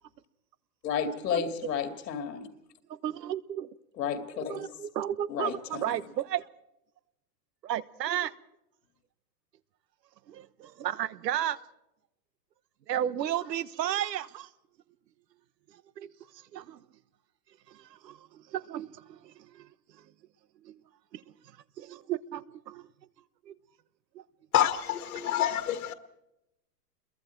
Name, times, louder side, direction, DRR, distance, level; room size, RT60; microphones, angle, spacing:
voice 1, 0.8-2.5 4.0-4.7 5.3-6.0, left 8 dB, 75° left, 2.4 m, -32 dB
voice 2, 3.0-3.7 4.3-6.5 7.6-8.3 10.3-11.6 12.9-14.5 16.0-16.1 16.5-16.8 17.7-19.7 20.6-20.8 21.1-21.2 21.8-22.8 23.5-23.6 24.1-24.2, right 11 dB, 75° right, 1.3 m, -33 dB
voice 3, 24.5-25.9, left 12 dB, 60° left, 1.9 m, -27 dB
28.0 x 22.5 x 4.6 m
supercardioid pair, 170°, 49 cm